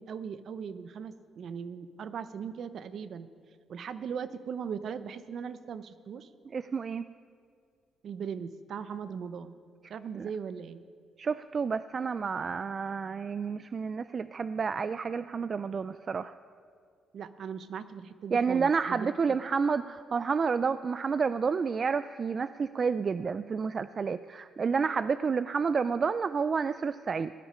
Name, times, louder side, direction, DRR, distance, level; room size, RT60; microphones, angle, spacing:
voice 1, 0.0-3.3 3.7-6.3 8.0-9.5 9.9-10.8 17.1-19.5, right 7 dB, 60° right, 13 dB, 0.7 m, -39 dB
voice 2, 6.5-7.1 10.2-10.3 11.2-16.3 18.3-27.3, right 5 dB, 40° right, 13 dB, 0.3 m, -30 dB
17.5 x 10.0 x 5.6 m, 2.1 s
cardioid pair, 90°, 0 cm